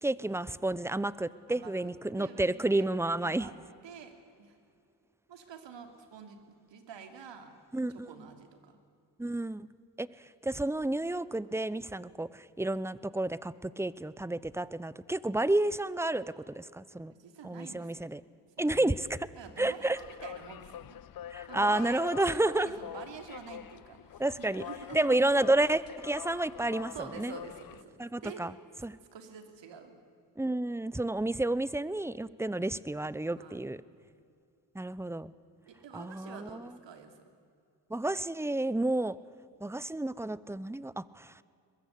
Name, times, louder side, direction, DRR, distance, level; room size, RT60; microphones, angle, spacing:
voice 1, 0.0-3.5 7.7-8.1 9.2-9.7 10.0-10.1 10.4-17.1 17.4-18.2 18.6-19.2 19.6-20.0 21.3-22.8 24.2-24.6 24.9-27.3 28.0-28.5 28.8-29.0 30.4-33.8 34.7-35.3 35.9-36.7 37.9-39.2 39.6-41.3, right 2 dB, 5° right, 18 dB, 0.8 m, -30 dB
voice 2, 1.5-1.9 2.2-2.9 3.2-3.5 3.8-4.6 5.3-7.5 7.9-8.8 17.1-18.1 18.6-18.9 19.4-21.0 21.5-25.2 26.9-28.4 29.1-30.0 33.3-33.7 35.7-37.3, right 6 dB, 80° right, 7 dB, 3.1 m, -48 dB
sound 1, 20.0-27.8, left 11 dB, 55° left, 0.7 m, -45 dB
22.0 x 21.5 x 8.4 m, 2.4 s
cardioid pair, 65°, 44 cm